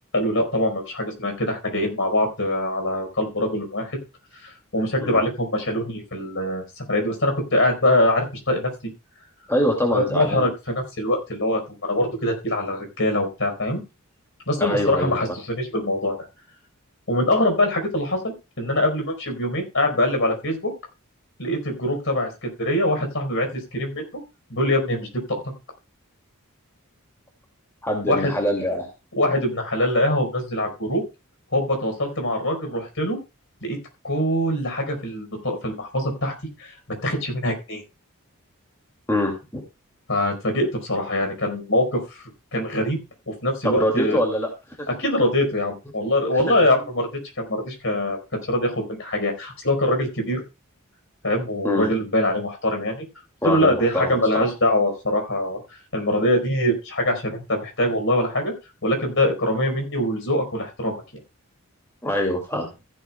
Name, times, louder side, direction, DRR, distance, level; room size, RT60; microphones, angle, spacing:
voice 1, 0.1-3.9 4.3-8.7 9.9-13.8 14.5-15.3 15.6-16.3 17.1-20.7 21.4-24.2 24.5-25.4 28.1-28.3 29.2-31.0 31.5-33.2 33.6-33.8 34.0-36.3 36.6-36.7 37.0-37.8 40.1-42.2 42.5-43.0 43.3-44.2 44.9-47.1 47.4-48.2 48.5-50.4 51.2-53.1 53.4-58.5 58.8-60.9, left 1 dB, 60° left, 4 dB, 4.7 m, -23 dB
voice 2, 9.5-10.5 14.6-15.2 27.8-28.9 39.1-39.6 43.6-44.5 44.8-44.9 51.6-51.9 53.4-54.5 62.0-62.7, left 1 dB, 10° left, 1 dB, 2.4 m, -24 dB
15.0 x 11.5 x 2.3 m, 0.28 s
head